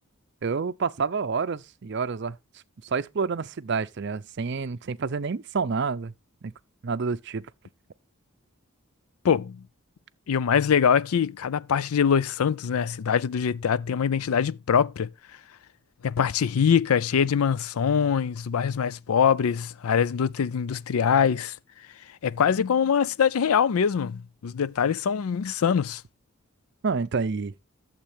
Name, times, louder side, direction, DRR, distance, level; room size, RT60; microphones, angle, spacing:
voice 1, 0.4-2.4 2.8-6.1 6.4-6.5 6.8-7.5 26.8-27.5, right 5 dB, 55° right, 0.5 m, -28 dB
voice 2, 9.2-9.6 10.3-15.1 16.0-21.6 22.2-26.0, left 7 dB, 85° left, 0.4 m, -23 dB
11.5 x 7.4 x 3.5 m
head